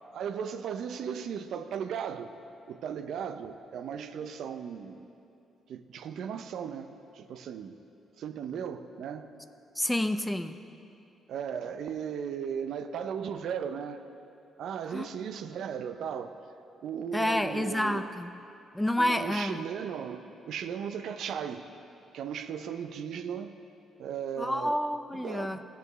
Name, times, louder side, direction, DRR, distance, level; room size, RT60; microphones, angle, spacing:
voice 1, 0.1-2.3 2.7-5.1 5.7-7.8 8.2-9.3 11.3-14.0 14.6-16.3 16.8-18.1 19.0-21.7 22.1-23.6 24.0-24.8 25.1-25.6, right 7 dB, 75° right, 9 dB, 0.5 m, -36 dB
voice 2, 9.8-10.5 14.9-15.1 17.1-18.3 18.7-19.6 24.4-25.6, left 1 dB, 10° left, 9 dB, 0.4 m, -29 dB
16.0 x 8.0 x 3.1 m, 2.8 s
cardioid pair, 90°, 0 cm